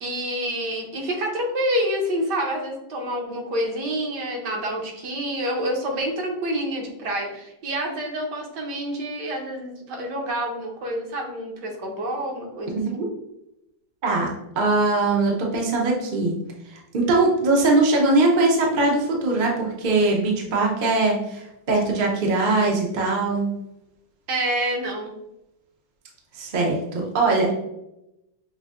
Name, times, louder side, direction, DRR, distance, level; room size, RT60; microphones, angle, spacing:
voice 1, 0.0-12.8 24.3-25.1 27.3-27.5, right 1 dB, 70° right, 1 dB, 1.4 m, -28 dB
voice 2, 14.6-16.3 16.9-23.5 26.4-27.5, right 2 dB, 50° right, -1 dB, 0.5 m, -21 dB
6.0 x 2.7 x 2.4 m, 0.85 s
omnidirectional pair, 2.0 m